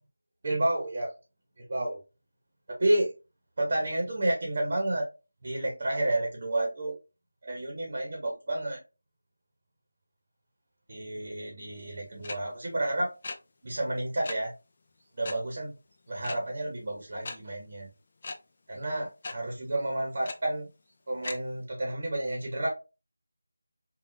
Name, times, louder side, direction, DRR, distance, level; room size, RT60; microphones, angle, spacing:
voice 1, 0.4-1.1 1.6-2.0 2.7-3.1 3.6-5.1 5.4-7.0 7.4-8.8 10.9-13.1 13.6-14.5 15.2-15.7 16.1-17.9 18.7-20.7 21.1-22.7, right 1 dB, 35° right, -1 dB, 1.0 m, -30 dB
sound 1, 12.2-12.3 13.2-13.4 14.2-14.3 15.2-15.3 16.2-16.4 17.2-17.4 18.2-18.3 19.2-19.3 20.2-20.3 21.2-21.3, left 3 dB, 30° left, 0.4 m, -36 dB
5.3 x 2.4 x 2.6 m, 0.29 s
figure-of-eight pair, 175°, 0 cm